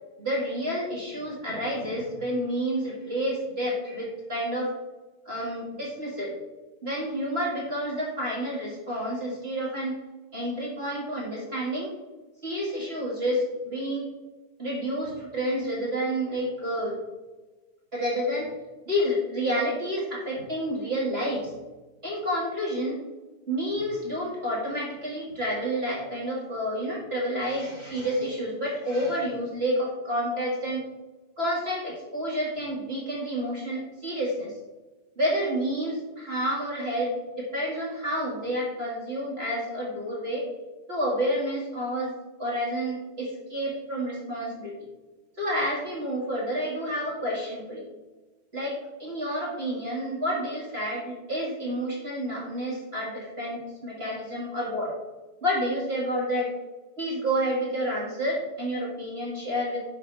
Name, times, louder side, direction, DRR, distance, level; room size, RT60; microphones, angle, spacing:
voice 1, 0.2-4.7 5.2-6.3 6.8-9.9 10.3-11.9 12.4-14.1 14.6-17.0 17.9-18.5 18.9-21.5 22.0-23.0 23.5-30.8 31.4-34.5 35.1-40.5 40.9-44.7 45.4-47.8 48.5-54.9 55.4-56.5 57.0-59.8, equal, 25° right, -5 dB, 1.3 m, -29 dB
9.8 x 3.6 x 5.5 m, 1.2 s
omnidirectional pair, 4.0 m